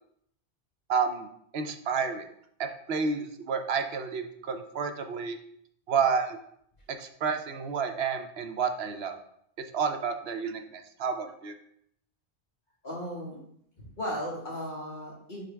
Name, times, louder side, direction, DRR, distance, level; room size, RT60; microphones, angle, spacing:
voice 1, 0.9-1.3 1.5-2.3 2.6-5.4 5.9-6.4 6.9-9.2 9.7-11.5, right 6 dB, 75° right, 7 dB, 0.9 m, -30 dB
voice 2, 12.8-13.4 13.8-15.4, equal, 50° left, -3 dB, 1.9 m, -36 dB
6.5 x 5.0 x 3.4 m, 0.70 s
omnidirectional pair, 1.1 m